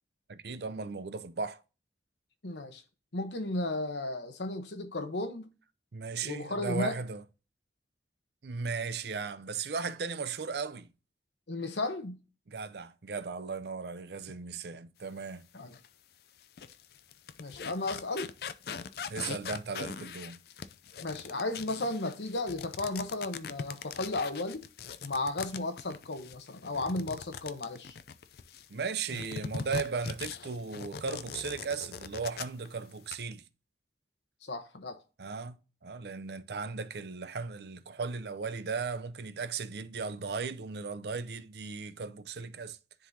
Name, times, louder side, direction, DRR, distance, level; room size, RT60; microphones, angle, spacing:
voice 1, 0.3-1.6 5.9-7.2 8.4-10.9 12.5-15.5 19.1-20.4 28.7-33.4 35.2-42.8, right 5 dB, 65° right, 0.6 m, -36 dB
voice 2, 2.4-2.8 3.1-5.5 6.2-7.0 11.5-12.2 15.5-15.7 17.4-18.3 21.0-24.6 25.0-28.0 34.4-35.0, left 2 dB, 80° left, 1.0 m, -34 dB
sound 1, 15.7-15.9 16.4-28.7 29.1-32.7 32.9-33.2, left 6 dB, 60° left, 0.4 m, -41 dB
10.0 x 3.8 x 2.7 m
head